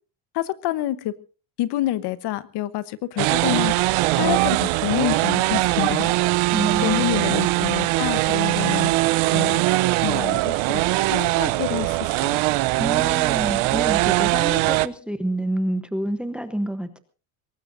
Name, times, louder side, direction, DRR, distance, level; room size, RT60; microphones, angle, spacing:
voice 1, 0.3-1.1 1.6-6.1 6.8-9.6 10.0-10.8 11.1-12.4, left 14 dB, 60° left, 15 dB, 1.0 m, -27 dB
sound 1, 3.2-14.9, right 19 dB, 80° right, 0.8 m, -21 dB
voice 2, 6.5-7.0 12.8-17.0, right 1 dB, ahead, 10 dB, 0.9 m, -28 dB
23.0 x 19.0 x 2.6 m, 0.34 s
cardioid pair, 180°, 47 cm